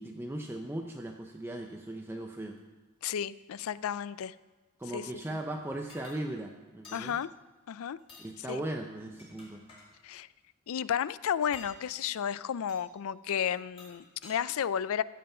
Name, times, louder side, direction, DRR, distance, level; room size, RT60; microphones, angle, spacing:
voice 1, 0.0-2.6 4.8-7.2 8.2-9.6, right 1 dB, 10° right, 2 dB, 0.6 m, -38 dB
voice 2, 3.0-4.3 4.9-5.1 6.9-7.3 7.7-8.0 8.5-8.6 10.0-10.3 10.7-15.0, left 8 dB, 65° left, 18 dB, 0.4 m, -32 dB
sound 1, 5.9-6.2 6.8-7.1 8.0-8.3 9.0-9.9 11.4-11.8 12.7-12.8 13.6-14.4, left 3 dB, 25° left, 3.9 m, -51 dB
14.5 x 7.7 x 5.6 m, 1.3 s
head